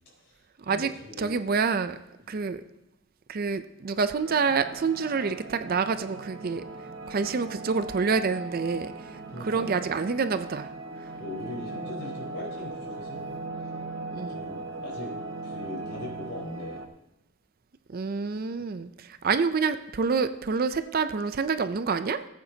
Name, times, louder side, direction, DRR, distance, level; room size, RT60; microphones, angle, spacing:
voice 1, 0.6-1.4 2.3-2.4 9.3-9.8 11.2-13.3 14.3-15.1 15.4-16.8, left 1 dB, 55° left, -3 dB, 4.4 m, -40 dB
voice 2, 1.2-2.0 2.3-2.6 3.3-6.6 7.1-8.9 9.4-10.7 14.1-14.4 17.9-22.2, right 5 dB, 45° right, 11 dB, 0.5 m, -27 dB
sound 1, 4.1-16.9, right 3 dB, 80° right, 1.0 m, -39 dB
19.0 x 8.7 x 2.8 m, 0.92 s
head